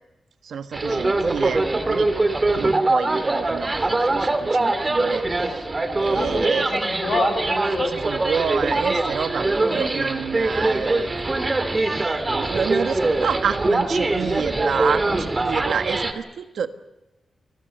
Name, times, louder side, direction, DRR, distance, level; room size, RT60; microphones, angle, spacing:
voice 1, 0.4-2.1 2.5-5.3 6.0-6.7 7.8-11.3 12.3-16.7, right 7 dB, 80° right, 9 dB, 1.5 m, -28 dB
sound 1, 0.7-16.1, right 2 dB, 25° right, 2.4 m, -23 dB
voice 2, 6.1-8.0 13.7-14.2, left 4 dB, 65° left, 7 dB, 5.6 m, -29 dB
29.5 x 20.5 x 6.7 m, 1.1 s
wide cardioid pair, 130°, 0 cm